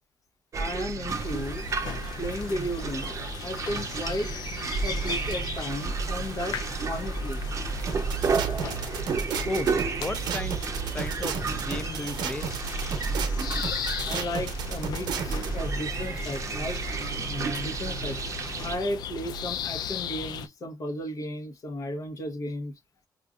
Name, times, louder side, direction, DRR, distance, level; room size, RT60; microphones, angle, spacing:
sound 1, 0.5-18.8, right 4 dB, 45° right, 0.6 m, -31 dB
voice 1, 0.6-1.7 2.2-4.3 4.8-6.6 6.9-7.4 14.1-16.8 17.2-18.2 18.6-22.7, left 1 dB, 50° left, 0.9 m, -34 dB
sound 2, 1.1-20.5, left 8 dB, 75° left, 0.4 m, -38 dB
sound 3, 7.9-15.5, right 6 dB, 85° right, 0.7 m, -33 dB
voice 2, 9.4-12.5, left 2 dB, 15° left, 0.5 m, -35 dB
5.0 x 2.5 x 2.3 m
cardioid pair, 110°, 7 cm